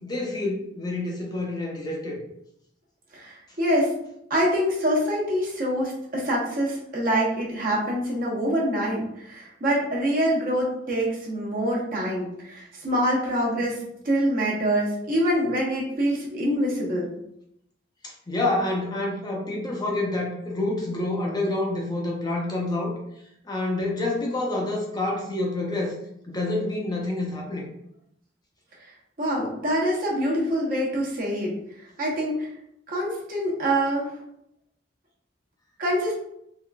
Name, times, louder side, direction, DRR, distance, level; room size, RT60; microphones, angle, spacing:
voice 1, 0.0-2.2 18.0-22.9 23.4-25.9 26.3-27.7, left 2 dB, 25° left, -2 dB, 0.6 m, -28 dB
voice 2, 3.1-3.9 4.3-13.8 14.0-17.1 29.2-31.5 32.0-32.5 32.9-34.1 35.8-36.1, equal, 50° right, -4 dB, 0.9 m, -25 dB
3.7 x 2.4 x 2.3 m, 0.76 s
head